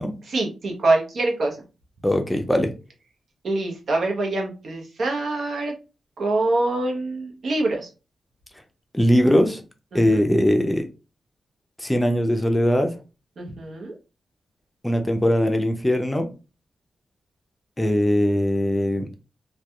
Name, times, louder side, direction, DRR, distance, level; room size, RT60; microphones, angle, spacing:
voice 1, 0.3-1.6 3.4-5.7 6.2-7.9 9.9-10.2 13.4-13.9, right 2 dB, 70° right, 0.8 m, -25 dB
voice 2, 2.0-2.7 8.9-9.6 9.9-10.9 11.8-12.9 14.8-16.3 17.8-19.1, equal, 10° left, 0.5 m, -20 dB
2.6 x 2.3 x 2.3 m
cardioid pair, 50°, 0 cm